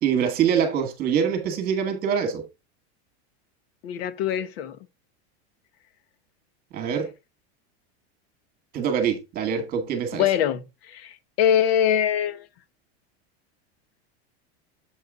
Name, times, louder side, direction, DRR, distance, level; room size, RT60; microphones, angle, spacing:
voice 1, 0.0-2.4 6.7-7.1 8.7-10.3, right 7 dB, 25° right, 2.0 m, -24 dB
voice 2, 3.8-4.8 10.1-12.4, left 9 dB, 65° left, 1.1 m, -23 dB
8.1 x 5.4 x 3.9 m
supercardioid pair, 170°, 33 cm